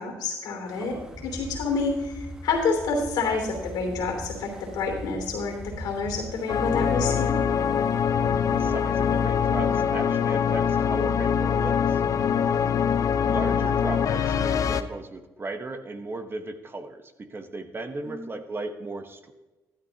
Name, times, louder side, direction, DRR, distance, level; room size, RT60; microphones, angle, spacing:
voice 1, 0.0-7.4 12.6-12.9 18.0-18.3, left 4 dB, 70° left, 2 dB, 3.0 m, -29 dB
Wind, 0.7-9.8, equal, 10° right, 1.4 m, -42 dB
sound 1, 6.5-14.8, left 7 dB, 55° left, 0.6 m, -23 dB
voice 2, 8.5-12.0 13.3-19.3, right 2 dB, 35° right, 7 dB, 1.2 m, -36 dB
12.5 x 12.0 x 2.9 m, 1.1 s
supercardioid pair, 60°, 7 cm